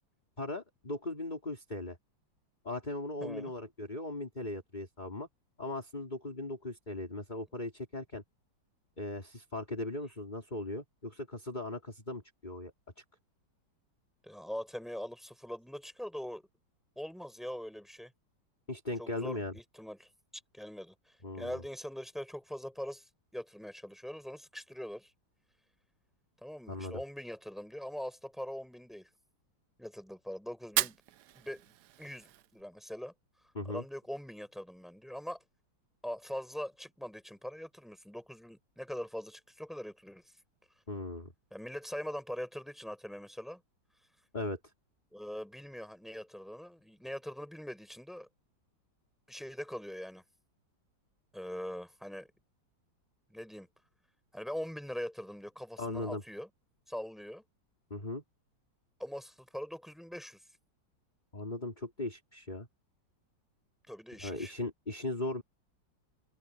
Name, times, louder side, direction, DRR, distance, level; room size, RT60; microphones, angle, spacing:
voice 1, 0.4-2.0 2.6-5.3 5.6-8.2 9.0-13.0 18.7-19.5 21.2-21.6 26.7-27.0 33.5-33.8 40.9-41.3 44.3-44.6 55.8-56.2 57.9-58.2 61.3-62.7 64.2-65.4, left 2 dB, 20° left, 3.8 m, -38 dB
voice 2, 3.2-3.5 14.2-16.4 17.0-18.1 19.0-20.1 20.5-25.1 26.4-29.1 29.8-31.0 31.3-33.1 33.7-35.4 36.0-40.2 41.5-43.6 45.1-48.3 49.3-50.2 51.3-52.3 53.3-53.7 54.3-56.5 56.9-57.4 59.0-60.4 63.9-64.5, equal, ahead, 6.2 m, -42 dB
Fire, 30.6-32.6, right 14 dB, 70° right, 1.1 m, -36 dB
omnidirectional pair, 2.1 m